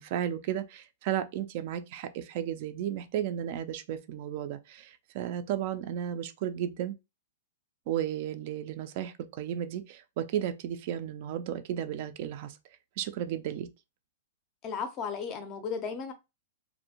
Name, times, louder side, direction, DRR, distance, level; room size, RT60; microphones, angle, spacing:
voice 1, 0.0-6.9 7.9-12.6 13.0-13.7, right 10 dB, 45° right, 0.3 m, -34 dB
voice 2, 14.6-16.1, left 6 dB, 25° left, 0.5 m, -35 dB
2.5 x 2.0 x 2.8 m
hypercardioid pair, 160°, 0 cm